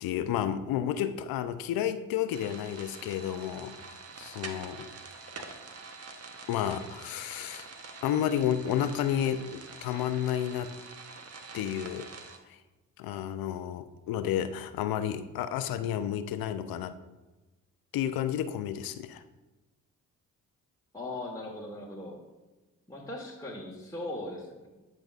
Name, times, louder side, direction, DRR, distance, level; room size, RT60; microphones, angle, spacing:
voice 1, 0.0-4.9 6.5-7.7 8.0-10.7 11.5-12.1 12.5-12.6 13.0-16.9 17.9-19.2, left 10 dB, 75° left, 11 dB, 0.5 m, -31 dB
sound 1, 2.3-12.4, right 4 dB, 45° right, 1.0 m, -46 dB
voice 2, 20.9-22.2 22.9-24.7, left 1 dB, 10° left, -3 dB, 1.3 m, -39 dB
10.5 x 5.3 x 2.5 m, 1.1 s
supercardioid pair, 50°, 36 cm